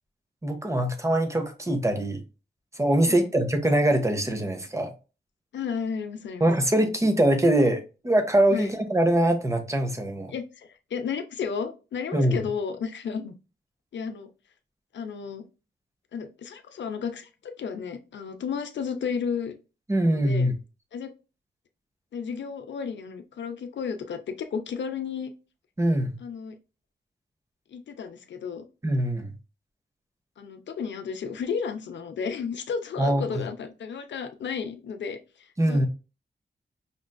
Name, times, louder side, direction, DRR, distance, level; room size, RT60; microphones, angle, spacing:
voice 1, 0.4-2.2 2.8-4.9 6.4-10.3 12.1-12.4 19.9-20.5 25.8-26.2 28.8-29.3 33.0-33.4 35.6-35.9, right 1 dB, 15° right, 0.6 m, -23 dB
voice 2, 5.5-6.5 8.5-8.7 10.3-13.4 13.9-14.3 14.9-15.4 16.1-19.6 20.0-20.5 20.9-21.1 22.1-25.3 26.2-26.6 27.7-28.6 30.4-35.2 35.7-35.9, left 6 dB, 90° left, 0.5 m, -33 dB
5.1 x 2.5 x 2.2 m
wide cardioid pair, 115°, 18 cm